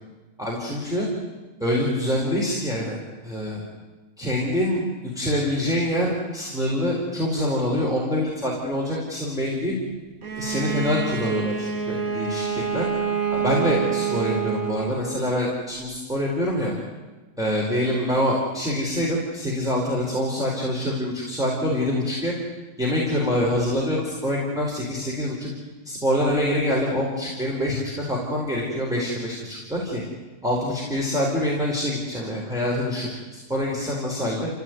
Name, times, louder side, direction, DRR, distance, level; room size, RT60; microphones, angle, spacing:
voice 1, 0.4-1.1 1.6-3.6 4.2-4.8 5.1-9.7 10.3-12.9 13.3-16.7 17.4-22.3 22.8-25.5 25.8-30.0 30.4-34.5, left 1 dB, ahead, -4 dB, 4.7 m, -25 dB
Bowed string instrument, 10.2-15.4, right 7 dB, 85° right, 2.1 m, -27 dB
29.5 x 16.0 x 9.5 m, 1.2 s
omnidirectional pair, 1.5 m